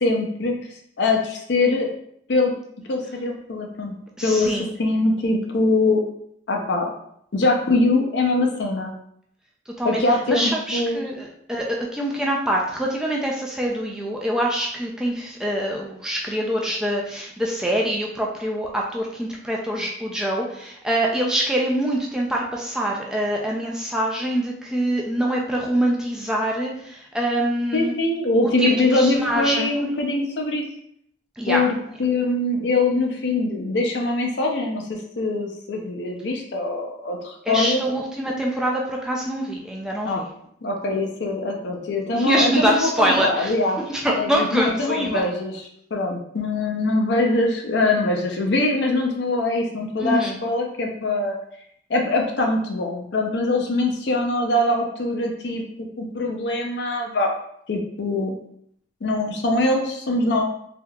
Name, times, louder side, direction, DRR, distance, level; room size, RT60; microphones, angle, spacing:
voice 1, 0.0-0.6 1.0-1.9 2.3-2.5 2.9-3.9 4.2-4.5 4.8-6.0 6.5-6.9 7.3-8.9 9.8-11.0 27.7-30.6 31.5-31.7 32.0-37.8 40.0-40.2 40.6-43.8 44.1-45.5 45.9-51.3 51.9-55.6 56.0-57.3 57.7-58.4 59.0-60.4, left 2 dB, 70° left, 1 dB, 0.6 m, -22 dB
voice 2, 4.2-4.7 9.7-27.9 28.4-29.7 31.4-31.7 37.5-40.3 42.1-45.2 50.0-50.4, right 1 dB, 5° right, -2 dB, 0.3 m, -24 dB
3.4 x 2.8 x 2.3 m, 0.70 s
head